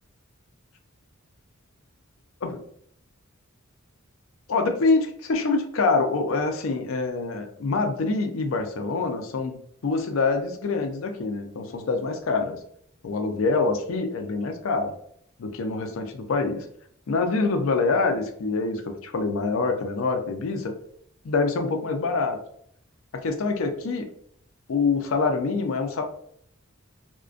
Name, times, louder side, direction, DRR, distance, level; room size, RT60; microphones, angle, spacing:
voice 1, 4.5-9.6 9.8-12.6 13.0-14.9 15.4-16.7 17.1-20.7 21.2-22.4 23.1-24.1 24.7-26.0, left 3 dB, 70° left, 5 dB, 0.4 m, -25 dB
2.4 x 2.1 x 2.4 m, 0.66 s
head